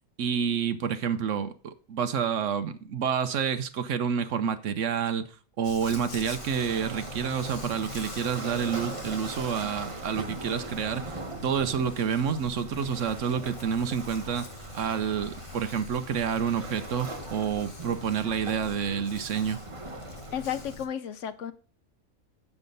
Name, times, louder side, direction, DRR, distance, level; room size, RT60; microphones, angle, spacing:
voice 1, 0.2-5.3 5.6-14.4 14.7-19.6, right 7 dB, 65° right, 1.0 m, -29 dB
Dog, 5.6-20.9, left 3 dB, 35° left, 1.1 m, -44 dB
Waves surf, 5.8-20.7, right 3 dB, 25° right, 1.1 m, -41 dB
voice 2, 20.3-21.5, left 9 dB, 65° left, 1.0 m, -33 dB
7.2 x 7.0 x 3.9 m
omnidirectional pair, 1.5 m